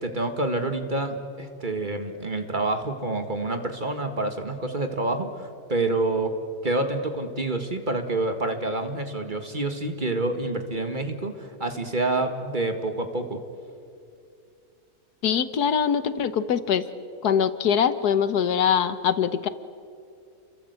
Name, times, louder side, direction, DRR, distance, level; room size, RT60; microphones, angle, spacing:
voice 1, 0.0-6.3 6.6-13.4, right 2 dB, 30° right, 6 dB, 2.0 m, -28 dB
voice 2, 15.2-16.8 17.2-19.5, left 7 dB, 85° left, 12 dB, 1.6 m, -23 dB
29.5 x 23.0 x 8.2 m, 2.5 s
omnidirectional pair, 1.6 m